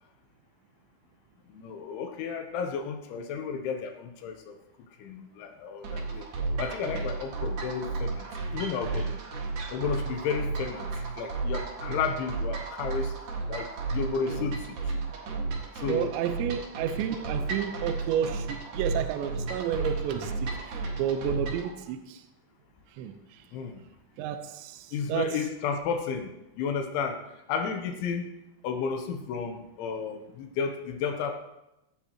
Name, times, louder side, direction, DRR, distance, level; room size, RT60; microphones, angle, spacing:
voice 1, 1.5-4.6 5.0-6.3 6.6-8.3 8.5-9.2 9.7-10.9 11.2-13.1 13.5-14.9 15.8-16.2 23.5-23.8 24.9-26.3 26.6-27.2 27.5-28.3 28.6-31.3, left 6 dB, 75° left, 4 dB, 3.2 m, -32 dB
sound 1, 5.8-21.7, right 3 dB, 55° right, 2.6 m, -33 dB
voice 2, 15.9-22.2 23.0-23.1 24.2-25.3, right 9 dB, 80° right, 7 dB, 2.9 m, -31 dB
17.0 x 13.5 x 3.0 m, 0.89 s
omnidirectional pair, 5.8 m